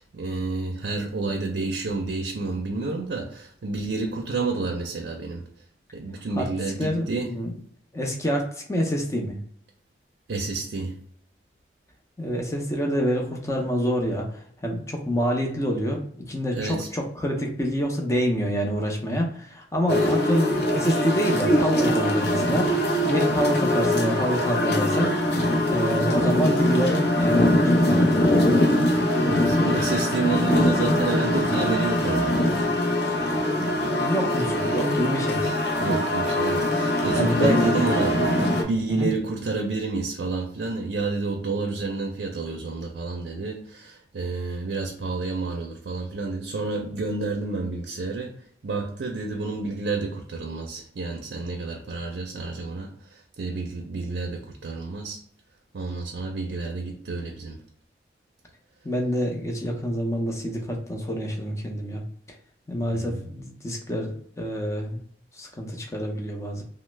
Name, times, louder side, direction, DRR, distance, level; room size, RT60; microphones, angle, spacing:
voice 1, 0.0-5.4 5.9-7.3 10.3-11.0 16.5-16.9 19.9-20.1 29.2-32.3 35.4-48.3 48.6-55.2 55.7-57.6 62.9-63.2, right 3 dB, 70° right, 2 dB, 0.5 m, -30 dB
voice 2, 6.8-7.5 7.9-9.4 12.2-28.4 33.3-35.4 37.2-38.1 38.4-38.5 38.9-39.1 58.8-62.0 62.7-65.0 65.3-66.6, equal, 15° left, 1 dB, 0.5 m, -27 dB
sound 1, 19.9-38.6, left 1 dB, 65° left, 0.6 m, -22 dB
3.1 x 2.0 x 3.1 m, 0.62 s
head